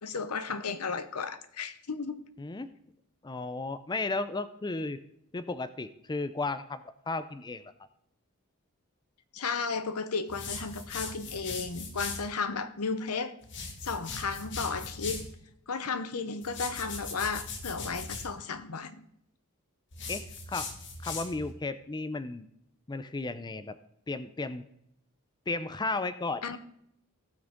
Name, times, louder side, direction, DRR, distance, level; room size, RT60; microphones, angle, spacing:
voice 1, 0.0-2.3 9.3-13.3 13.8-15.4 15.7-19.0 26.4-26.6, left 4 dB, 85° left, 0.9 m, -34 dB
voice 2, 2.4-2.7 3.2-5.0 5.3-6.8 7.1-7.6 20.1-20.7 21.0-22.5 22.9-23.7 24.1-24.6 25.5-26.6, left 3 dB, 20° left, 0.4 m, -34 dB
sound 1, 10.3-12.3 13.4-15.3 16.4-18.3 19.9-21.5, left 4 dB, 55° left, 1.6 m, -39 dB
17.0 x 6.2 x 3.6 m
head